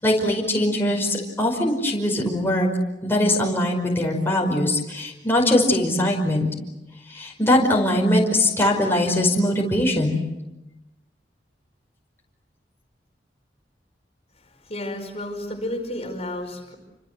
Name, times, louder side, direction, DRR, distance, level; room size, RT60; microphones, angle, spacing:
voice 1, 0.0-2.7 3.0-6.5 7.1-10.2, left 1 dB, 15° left, -1 dB, 5.2 m, -21 dB
voice 2, 14.4-16.8, left 1 dB, 35° left, 4 dB, 4.9 m, -32 dB
29.5 x 26.0 x 7.8 m, 0.97 s
head